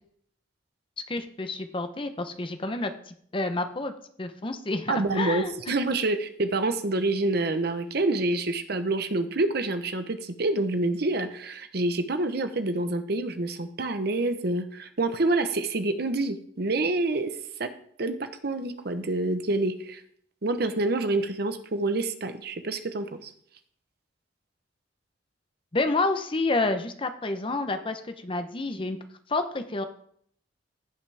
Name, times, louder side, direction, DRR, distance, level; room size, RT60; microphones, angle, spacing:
voice 1, 1.1-3.9 4.2-5.7 25.7-29.0 29.3-29.8, left 2 dB, 25° left, 8 dB, 0.7 m, -29 dB
voice 2, 4.9-17.3 17.6-17.7 18.0-20.0 20.4-23.3, right 2 dB, 55° right, 9 dB, 0.9 m, -27 dB
16.0 x 5.9 x 3.4 m, 0.64 s
head